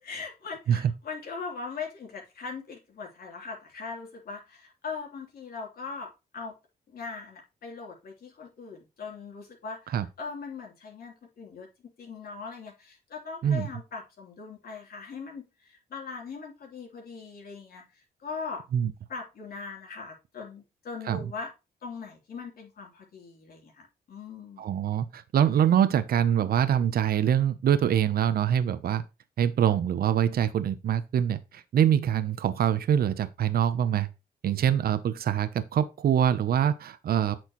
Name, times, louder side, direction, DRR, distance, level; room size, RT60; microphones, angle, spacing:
voice 1, 0.0-6.5 6.9-11.7 12.0-18.6 19.1-21.5 21.8-24.7, left 5 dB, 65° left, 3.4 m, -40 dB
voice 2, 24.6-29.0 29.4-34.1 34.4-37.3, right 9 dB, 65° right, 0.8 m, -24 dB
8.4 x 6.3 x 3.1 m
cardioid pair, 105°, 17 cm